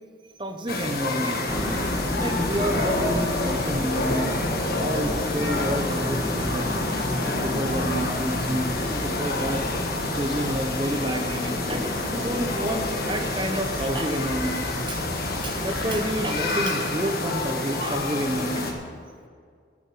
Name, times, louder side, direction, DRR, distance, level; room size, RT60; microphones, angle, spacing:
voice 1, 0.4-1.4 2.2-9.7 10.1-15.0 15.4-18.7, right 1 dB, 25° right, 4 dB, 1.0 m, -29 dB
sound 1, 0.7-18.7, left 2 dB, 55° left, 1.5 m, -29 dB
sound 2, 1.5-16.3, left 1 dB, 10° right, 1.8 m, -32 dB
9.5 x 8.2 x 9.4 m, 2.1 s
head